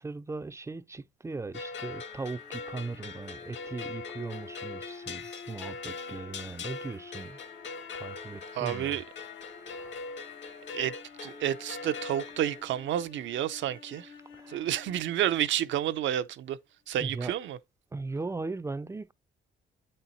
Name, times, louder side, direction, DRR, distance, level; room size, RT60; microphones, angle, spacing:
voice 1, 0.0-7.4 8.0-9.0 9.5-10.1 14.3-14.6 17.0-17.3 17.9-19.1, right 3 dB, 15° right, 0.4 m, -38 dB
sound 1, 1.5-12.6, left 4 dB, 65° left, 1.5 m, -41 dB
sound 2, 2.3-16.4, left 5 dB, 80° left, 1.3 m, -51 dB
voice 2, 8.5-9.0 10.7-11.0 11.2-14.1 14.5-16.6 16.9-17.6, right 11 dB, 70° right, 0.5 m, -30 dB
8.5 x 4.4 x 4.0 m
cardioid pair, 90°, 20 cm